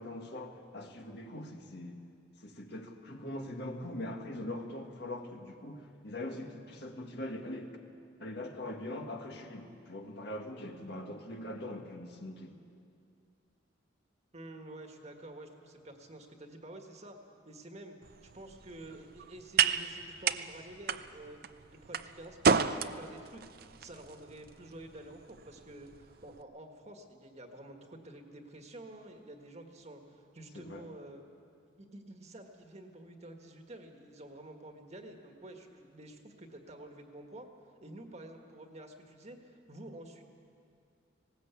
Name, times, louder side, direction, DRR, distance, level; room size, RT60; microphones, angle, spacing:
voice 1, 0.0-2.0 2.4-7.7 8.2-12.5 30.5-30.8, left 1 dB, 55° left, 1.8 m, -42 dB
voice 2, 14.3-17.2 17.4-18.0 18.3-31.2 31.8-37.5 37.8-40.2, right 1 dB, 35° right, 1.7 m, -49 dB
sound 1, 18.0-26.4, right 6 dB, 50° right, 0.6 m, -34 dB
19.5 x 18.5 x 8.3 m
head